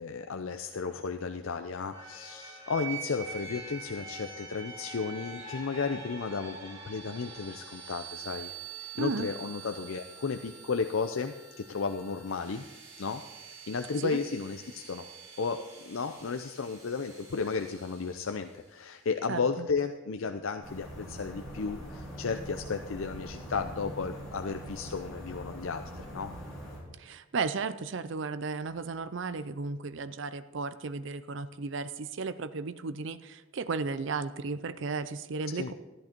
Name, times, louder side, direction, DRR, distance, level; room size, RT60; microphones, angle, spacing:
voice 1, 0.0-12.7 13.0-13.2 13.7-15.1 15.4-26.3 35.5-35.7, left 5 dB, 75° left, 6 dB, 0.6 m, -34 dB
sound 1, 1.9-18.6, right 5 dB, 35° right, 4.0 m, -45 dB
voice 2, 8.9-9.3 14.0-14.2 19.3-19.7 27.0-35.7, right 4 dB, 60° right, 13 dB, 0.5 m, -34 dB
sound 2, 20.6-26.8, equal, ahead, 4.4 m, -43 dB
13.5 x 11.0 x 4.5 m, 1.2 s
head